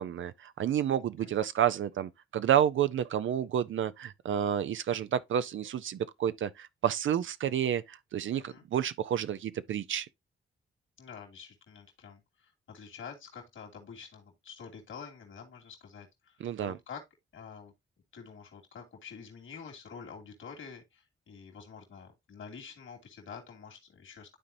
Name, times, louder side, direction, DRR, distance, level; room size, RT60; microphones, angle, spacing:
voice 1, 0.0-10.1 16.4-16.8, right 10 dB, 70° right, 0.5 m, -30 dB
voice 2, 8.3-8.6 11.0-17.0 17.3-17.7 18.1-24.4, left 6 dB, 70° left, 2.6 m, -48 dB
12.0 x 4.0 x 2.6 m
cardioid pair, 60°, 21 cm